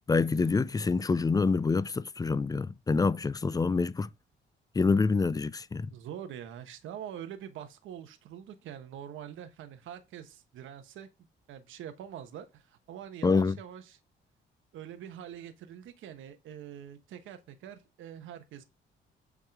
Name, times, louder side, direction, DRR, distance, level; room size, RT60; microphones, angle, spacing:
voice 1, 0.1-4.1 4.7-5.9 13.2-13.6, left 4 dB, 20° left, 0.4 m, -26 dB
voice 2, 5.9-11.1 11.5-14.0 14.7-18.6, right 9 dB, 85° right, 1.1 m, -44 dB
8.2 x 3.7 x 4.6 m
cardioid pair, 90°, 20 cm